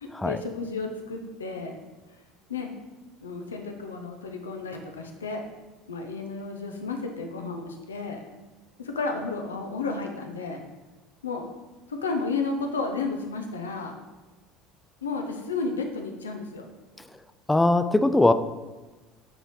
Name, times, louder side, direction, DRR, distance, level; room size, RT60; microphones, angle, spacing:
voice 1, 0.0-1.8 2.5-2.7 3.2-5.4 5.9-8.2 8.8-10.6 11.2-11.4 11.9-13.9 15.0-16.7, left 4 dB, 80° left, 3 dB, 0.7 m, -32 dB
voice 2, 17.5-18.3, left 2 dB, 10° left, 10 dB, 0.3 m, -20 dB
8.9 x 4.1 x 3.1 m, 1.2 s
figure-of-eight pair, 70°, 0 cm